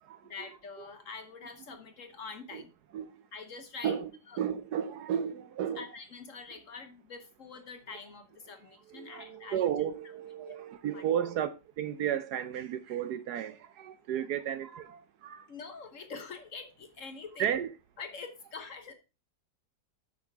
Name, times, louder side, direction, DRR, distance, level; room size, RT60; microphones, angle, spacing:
voice 1, 0.3-2.7 3.3-4.0 4.3-4.4 5.7-9.6 10.4-10.5 10.9-11.1 15.5-17.5 18.0-18.9, left 4 dB, 50° left, 1.1 m, -45 dB
voice 2, 4.4-5.8 8.9-15.5 17.4-17.7, right 9 dB, 70° right, 1.0 m, -33 dB
8.6 x 6.3 x 4.5 m
omnidirectional pair, 2.0 m